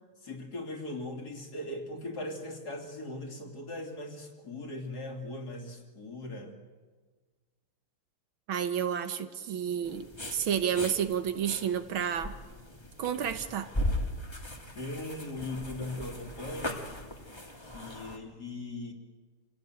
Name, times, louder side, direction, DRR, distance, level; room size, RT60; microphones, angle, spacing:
voice 1, 0.2-6.6 14.7-16.9 17.6-18.9, left 2 dB, 45° left, 2 dB, 3.5 m, -39 dB
voice 2, 8.5-12.4 13.0-13.7, right 8 dB, 70° right, 10 dB, 1.9 m, -30 dB
sound 1, 9.8-18.2, left 1 dB, 15° left, 1.8 m, -38 dB
27.0 x 16.5 x 9.2 m, 1.4 s
omnidirectional pair, 2.3 m